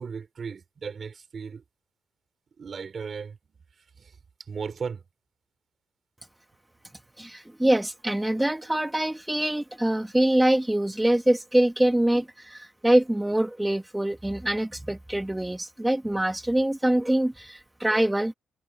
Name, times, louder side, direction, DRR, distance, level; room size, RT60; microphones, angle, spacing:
voice 1, 0.0-1.6 2.6-3.4 4.0-5.0, right 6 dB, 45° right, 4.2 m, -36 dB
voice 2, 7.2-18.3, right 1 dB, 10° right, 1.5 m, -24 dB
cardioid pair, 90°, 0 cm